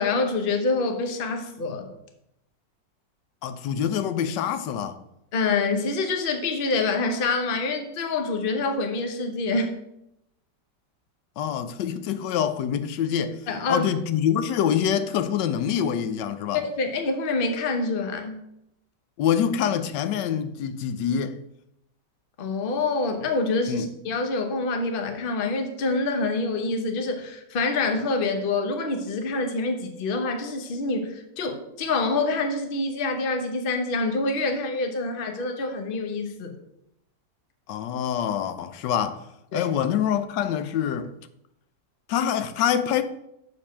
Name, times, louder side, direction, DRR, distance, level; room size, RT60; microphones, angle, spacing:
voice 1, 0.0-1.9 5.3-9.8 13.5-13.9 16.5-18.4 22.4-36.5 39.5-39.7, left 3 dB, 40° left, 0.8 m, -26 dB
voice 2, 3.4-5.0 11.4-13.4 13.7-16.6 19.2-21.4 23.7-23.9 37.7-39.3 39.5-41.1 42.1-43.0, left 9 dB, 85° left, 1.2 m, -25 dB
6.6 x 4.3 x 5.6 m
omnidirectional pair, 1.8 m